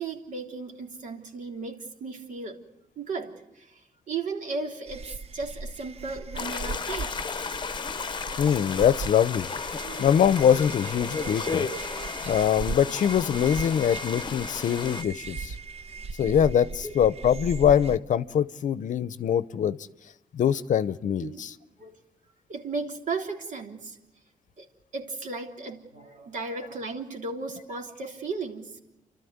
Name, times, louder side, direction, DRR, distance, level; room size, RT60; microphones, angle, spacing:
voice 1, 0.0-2.6 3.0-3.7 4.1-7.1 9.8-10.1 16.2-16.3 16.8-16.9 21.2-21.4 21.8-21.9 22.5-24.0 24.6-24.7 24.9-28.7, right 4 dB, 60° right, 2 dB, 3.4 m, -35 dB
sound 1, 4.9-18.0, right 4 dB, 45° right, 0.9 m, -38 dB
sound 2, 6.4-15.0, left 5 dB, 35° left, 0.9 m, -34 dB
voice 2, 8.4-9.5 10.0-11.7 12.3-15.5 16.2-19.8 20.3-21.5, left 9 dB, 60° left, 16 dB, 0.7 m, -23 dB
29.0 x 13.0 x 9.5 m, 0.94 s
cardioid pair, 105°, 14 cm